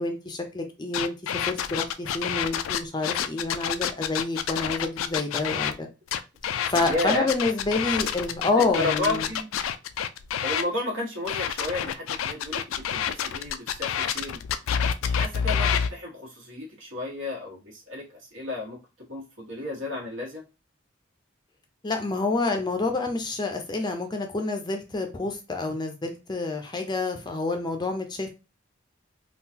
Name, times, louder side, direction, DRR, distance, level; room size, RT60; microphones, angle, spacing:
voice 1, 0.0-5.9 6.7-9.3 21.8-28.3, left 3 dB, 20° left, 0.5 m, -28 dB
sound 1, 0.9-5.7 6.1-10.6 11.3-15.9, left 8 dB, 80° left, 0.3 m, -28 dB
voice 2, 6.8-7.3 8.5-9.5 10.4-14.4 15.0-18.8 19.1-20.4, left 2 dB, 75° right, 1.5 m, -32 dB
3.7 x 2.3 x 2.8 m
head